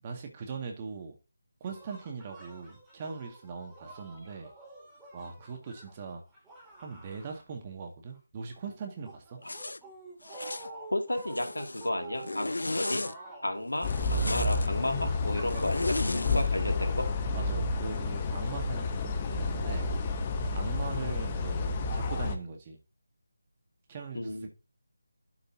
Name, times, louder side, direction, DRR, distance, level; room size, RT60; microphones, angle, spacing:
voice 1, 0.0-1.2 1.6-4.5 5.1-6.2 6.8-9.4 17.4-19.9 20.5-22.8 23.9-24.5, right 5 dB, 25° right, 1.9 m, -40 dB
sound 1, 1.7-7.9 8.1-17.1, right 2 dB, 5° right, 2.6 m, -48 dB
Zipper (clothing), 9.5-9.8 10.2-10.7 11.2-11.9 12.2-13.1 13.8-14.7 15.5-16.5, left 2 dB, 75° left, 0.6 m, -34 dB
voice 2, 10.9-13.0 13.4-17.1 24.1-24.5, left 1 dB, 90° left, 2.2 m, -33 dB
sound 2, 13.8-22.4, left 3 dB, 25° left, 0.9 m, -30 dB
12.0 x 5.2 x 2.8 m
figure-of-eight pair, 160°, 0 cm